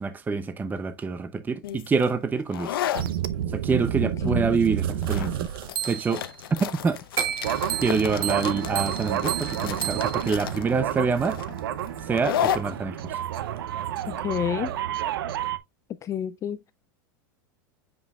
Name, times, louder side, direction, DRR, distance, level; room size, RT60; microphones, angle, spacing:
voice 1, 0.0-2.8 3.5-5.3 5.9-6.2 6.8-7.0 7.8-11.4 12.1-13.0, right 5 dB, 15° right, 0.6 m, -26 dB
sound 1, 1.6-15.0, left 11 dB, 90° left, 0.7 m, -34 dB
sound 2, 2.9-6.3 7.2-15.6, right 11 dB, 80° right, 0.6 m, -29 dB
voice 2, 4.0-4.5 14.1-14.7 16.0-16.6, left 10 dB, 25° left, 0.3 m, -29 dB
sound 3, 7.2-8.4, right 8 dB, 35° right, 1.1 m, -33 dB
7.9 x 5.2 x 2.3 m
supercardioid pair, 120°, 12 cm